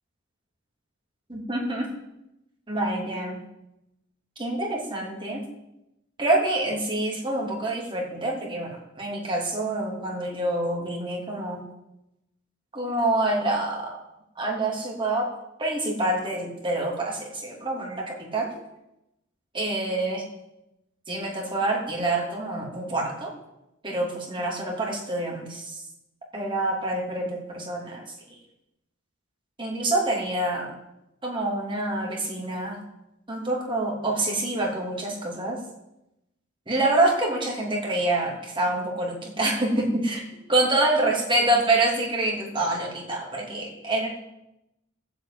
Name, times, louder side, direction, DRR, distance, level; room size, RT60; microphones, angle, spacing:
voice 1, 1.3-1.9 2.7-3.4 4.4-5.4 6.2-11.6 12.7-14.0 14.4-15.3 15.6-18.5 19.5-20.2 21.1-23.3 23.8-25.8 26.3-28.0 28.3-28.4 29.6-30.7 31.2-32.8 33.3-35.6 36.7-40.2 40.5-44.1, right 2 dB, 25° right, -1 dB, 3.0 m, -26 dB
16.0 x 8.1 x 8.8 m, 0.88 s
head